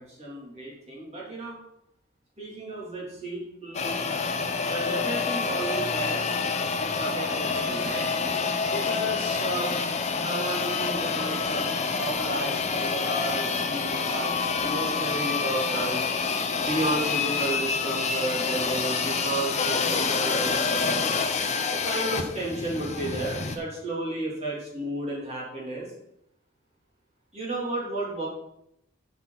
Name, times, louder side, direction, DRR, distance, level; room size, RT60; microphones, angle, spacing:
voice 1, 0.0-1.6 2.4-4.2 4.6-6.2 6.7-8.1 8.7-9.7 10.2-11.6 12.0-14.3 14.6-16.0 16.6-21.1 21.7-25.9 27.3-28.3, right 2 dB, 30° right, -5 dB, 3.1 m, -33 dB
sound 1, 3.7-23.6, left 4 dB, 30° left, 0.8 m, -27 dB
12.5 x 5.8 x 4.1 m, 0.78 s
head